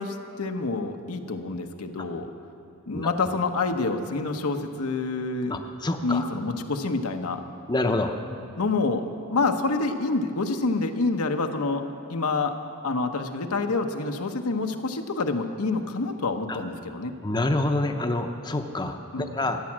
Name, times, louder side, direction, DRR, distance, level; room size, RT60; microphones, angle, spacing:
voice 1, 0.0-2.3 2.9-5.6 6.0-7.4 8.6-11.8 12.1-12.6 12.8-17.1 19.1-19.4, left 3 dB, 85° left, 5 dB, 0.9 m, -27 dB
voice 2, 5.5-6.3 7.7-8.2 16.5-16.6 17.2-19.6, left 2 dB, 20° left, 5 dB, 0.6 m, -27 dB
14.0 x 9.8 x 7.3 m, 2.7 s
head